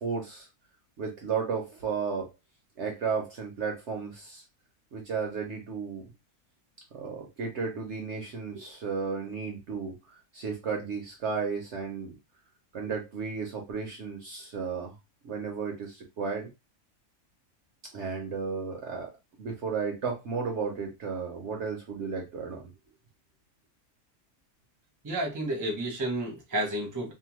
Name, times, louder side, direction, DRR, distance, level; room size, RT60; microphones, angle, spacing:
voice 1, 0.0-0.5 1.0-2.3 2.8-4.4 4.9-6.1 6.9-12.1 12.7-14.9 15.2-16.5 17.9-19.1 19.4-22.7, right 5 dB, 60° right, 0.9 m, -33 dB
voice 2, 25.0-27.1, right 1 dB, 15° right, 0.7 m, -31 dB
2.8 x 2.1 x 3.0 m
omnidirectional pair, 1.6 m